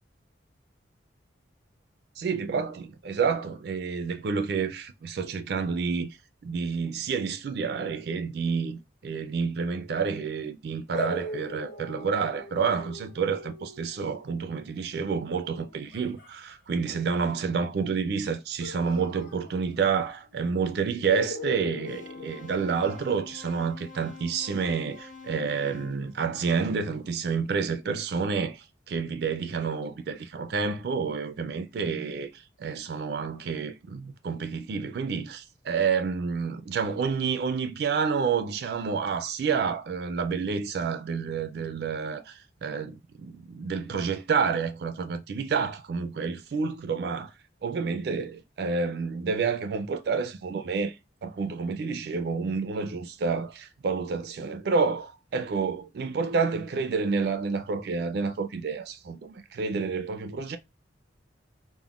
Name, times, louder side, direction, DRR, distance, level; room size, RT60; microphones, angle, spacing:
voice 1, 2.2-6.2 6.4-47.3 47.6-51.0 51.2-60.6, right 5 dB, 55° right, 0.3 m, -29 dB
sound 1, 10.9-16.4 18.6-20.1 20.3-20.4 21.1-23.3, left 2 dB, 75° left, 1.1 m, -40 dB
sound 2, 21.8-27.0, left 4 dB, 40° left, 1.0 m, -47 dB
3.5 x 2.1 x 2.3 m
head